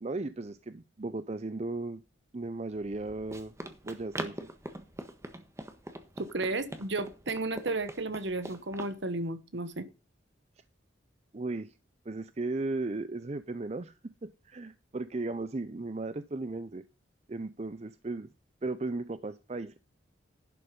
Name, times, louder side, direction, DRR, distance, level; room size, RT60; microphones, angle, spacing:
voice 1, 0.0-2.0 2.3-3.5 3.8-4.5 11.3-11.8 12.1-16.8 17.3-18.3 18.6-19.7, right 2 dB, 35° right, 0.5 m, -36 dB
Run, 2.8-9.0, right 1 dB, 15° right, 1.4 m, -43 dB
voice 2, 6.2-9.9, right 2 dB, 65° right, 1.2 m, -33 dB
11.5 x 6.7 x 5.3 m
head